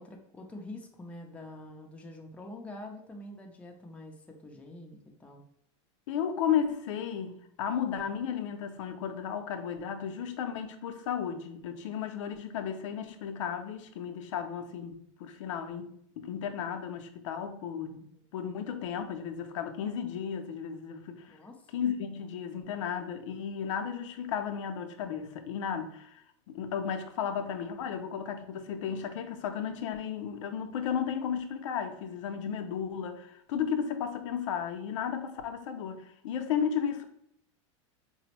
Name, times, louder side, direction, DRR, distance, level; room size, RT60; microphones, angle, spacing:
voice 1, 0.0-5.4 18.0-18.2 21.3-21.8, left 1 dB, 10° left, 0.5 m, -46 dB
voice 2, 6.1-18.0 18.3-21.4 21.7-37.0, left 8 dB, 80° left, 0.5 m, -34 dB
4.1 x 2.0 x 2.9 m
supercardioid pair, 130°, 16 cm